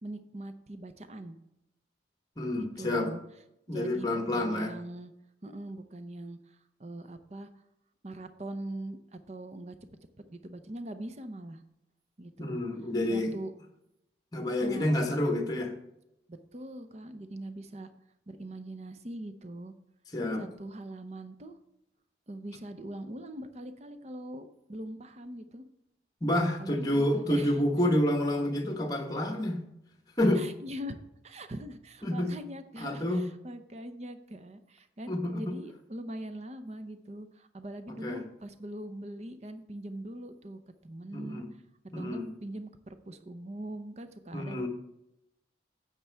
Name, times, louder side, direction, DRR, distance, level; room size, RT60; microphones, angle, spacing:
voice 1, 0.0-1.4 2.5-3.2 3.7-5.1 5.4-7.5 8.0-9.0 9.3-9.8 10.3-11.6 12.2-12.6 13.1-13.5 14.5-14.9 16.3-17.9 18.3-19.7 20.4-21.6 22.3-25.6 26.6-27.5 30.4-41.4 42.0-44.6, right 1 dB, 35° right, 10 dB, 0.6 m, -42 dB
voice 2, 2.4-3.1 3.7-4.7 12.4-13.3 14.3-15.7 20.1-20.5 26.2-29.6 30.2-30.4 32.0-32.3 32.8-33.2 35.1-35.5 37.9-38.2 41.1-41.5 41.9-42.3 44.3-44.7, left 1 dB, 20° left, 4 dB, 1.2 m, -29 dB
10.0 x 7.4 x 3.4 m, 0.85 s
head